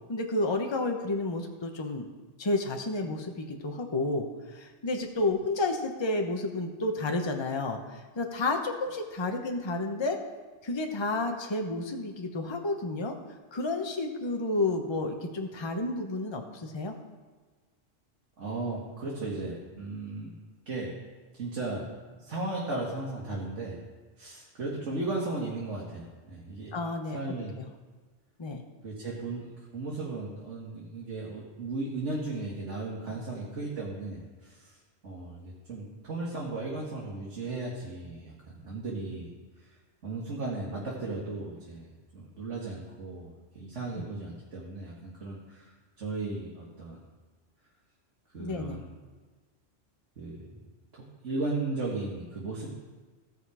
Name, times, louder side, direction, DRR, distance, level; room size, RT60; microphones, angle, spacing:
voice 1, 0.1-2.1 2.4-10.2 10.6-13.1 13.5-16.9 26.7-27.2 27.6-27.7 28.4-28.6 44.0-44.1 48.4-48.8, left 2 dB, 25° left, 4 dB, 0.9 m, -31 dB
voice 2, 18.4-20.3 20.7-20.9 21.3-21.9 22.2-23.8 24.2-26.7 27.1-27.6 28.8-34.8 35.0-39.3 39.6-39.7 40.0-47.0 48.3-48.8 50.2-50.5 50.9-52.7, right 2 dB, 80° right, -4 dB, 2.1 m, -36 dB
16.5 x 5.7 x 4.9 m, 1.4 s
omnidirectional pair, 1.2 m